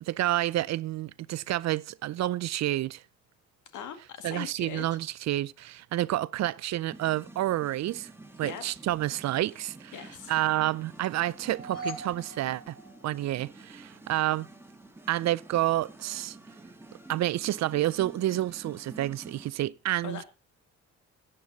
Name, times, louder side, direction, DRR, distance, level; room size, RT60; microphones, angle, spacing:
voice 1, 0.0-3.0 4.2-8.1 8.4-9.9 10.3-12.8 13.0-14.5 15.1-16.4 17.1-20.2, right 14 dB, 65° right, 0.5 m, -29 dB
voice 2, 3.7-4.9 8.4-8.6 9.9-10.4 20.0-20.2, left 8 dB, 75° left, 2.0 m, -40 dB
sound 1, 6.9-19.5, right 2 dB, 10° right, 1.7 m, -49 dB
sound 2, 11.3-13.6, right 1 dB, 50° left, 5.3 m, -41 dB
15.0 x 8.8 x 4.0 m
cardioid pair, 90°, 30 cm